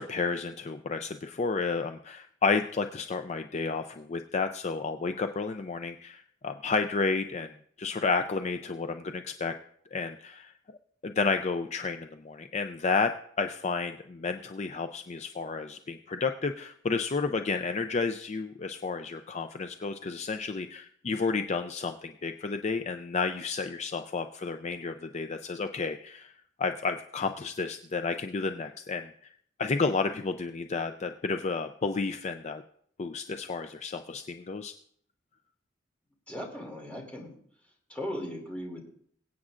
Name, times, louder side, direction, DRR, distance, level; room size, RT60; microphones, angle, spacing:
voice 1, 0.0-9.5 9.9-10.5 11.0-26.3 26.6-29.3 29.6-32.6 33.0-34.7, left 4 dB, 35° left, 7 dB, 0.4 m, -31 dB
voice 2, 36.3-37.4 37.9-38.8, equal, 5° left, -1 dB, 2.6 m, -37 dB
23.5 x 8.5 x 2.5 m, 0.63 s
head